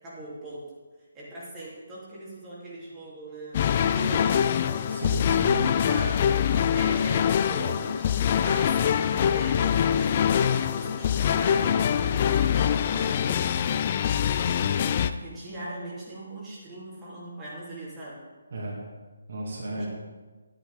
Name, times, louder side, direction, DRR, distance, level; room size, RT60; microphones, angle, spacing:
voice 1, 0.0-0.8 1.1-4.4 5.9-6.2 6.5-7.2 7.5-13.7 15.1-18.2 19.8-19.9, right 1 dB, 10° right, -8 dB, 2.7 m, -40 dB
sound 1, 3.5-15.1, left 8 dB, 30° left, 0.4 m, -24 dB
voice 2, 4.9-6.0 6.6-6.8 18.5-18.8 19.3-19.9, right 1 dB, 45° right, -3 dB, 2.4 m, -33 dB
11.5 x 9.6 x 4.0 m, 1.3 s
figure-of-eight pair, 145°, 0 cm